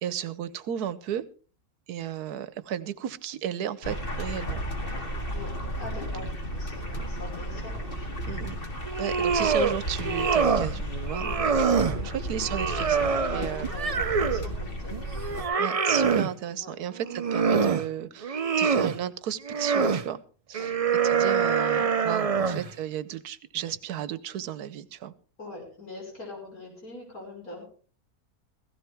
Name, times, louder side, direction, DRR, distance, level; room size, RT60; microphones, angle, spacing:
voice 1, 0.0-1.2 1.9-4.6 6.1-6.3 8.3-8.6 9.0-13.7 15.6-20.2 20.5-20.7 21.0-25.1, right 10 dB, 75° right, 15 dB, 1.3 m, -34 dB
sound 1, 3.8-15.4, equal, 35° left, 2.2 m, -34 dB
voice 2, 5.3-8.3 12.0-12.2 13.2-15.1 16.6-16.7 20.6-20.8 22.2-22.5 25.4-27.6, left 2 dB, 65° left, 0 dB, 6.2 m, -43 dB
sound 2, 8.8-9.7 10.0-10.7 11.1-12.0 12.4-14.5 14.9-16.3 17.0-17.8 18.2-19.0 19.4-20.0 20.5-22.7, right 5 dB, 55° right, 0.4 m, -25 dB
16.0 x 15.5 x 3.5 m, 0.39 s
omnidirectional pair, 1.7 m